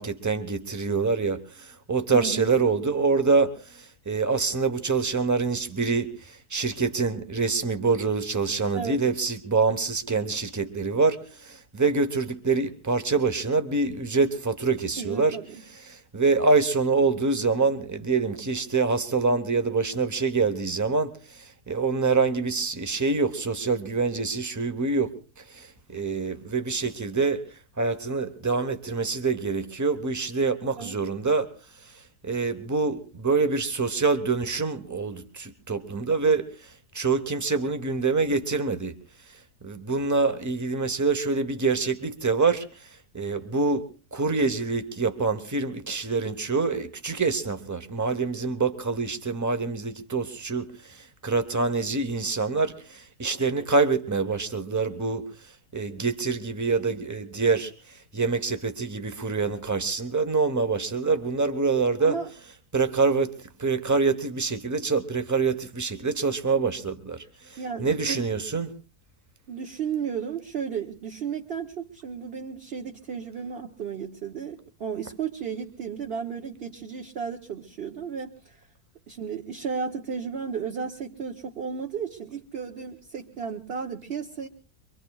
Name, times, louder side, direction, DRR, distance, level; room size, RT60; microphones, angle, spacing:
voice 1, 0.0-15.4 15.9-27.4 27.8-31.5 32.2-39.0 39.6-42.9 43.1-55.3 55.7-57.7 58.1-62.2 62.7-63.3 63.6-68.7, right 4 dB, 15° right, 9 dB, 0.8 m, -26 dB
voice 2, 2.1-2.5 8.7-9.0 15.0-15.6 30.8-31.0 62.0-62.3 67.6-68.3 69.5-78.6 79.1-84.5, right 6 dB, 45° right, 2 dB, 1.1 m, -34 dB
24.0 x 24.0 x 2.3 m, 0.35 s
omnidirectional pair, 1.6 m